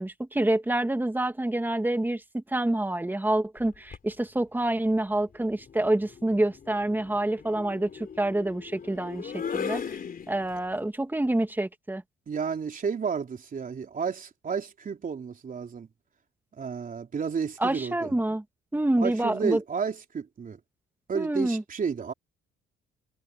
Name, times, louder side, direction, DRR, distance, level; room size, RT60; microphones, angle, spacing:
voice 1, 0.0-10.0 10.3-12.0 17.6-18.4 18.7-19.6 21.1-21.6, right 1 dB, 10° right, 2.2 m, -27 dB
sound 1, 3.6-4.1 5.5-10.8, left 6 dB, 45° left, 4.0 m, -38 dB
voice 2, 12.3-15.9 16.5-18.1 19.0-20.6 21.1-22.1, right 6 dB, 45° right, 3.8 m, -31 dB
cardioid pair, 90°, 20 cm